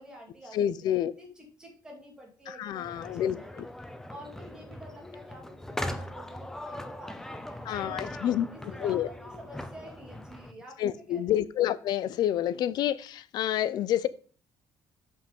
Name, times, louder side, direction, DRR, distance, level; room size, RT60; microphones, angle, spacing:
voice 1, 0.0-0.8 1.2-3.7 4.0-10.8 11.1-11.3, equal, 10° right, -1 dB, 2.8 m, -48 dB
voice 2, 0.5-1.1 2.5-3.4 7.7-8.5 8.8-9.1 10.8-14.1, left 11 dB, 70° left, 16 dB, 0.6 m, -28 dB
sound 1, 2.8-10.5, left 1 dB, 5° left, 0.7 m, -40 dB
7.7 x 5.6 x 5.3 m, 0.39 s
cardioid pair, 155°, 7 cm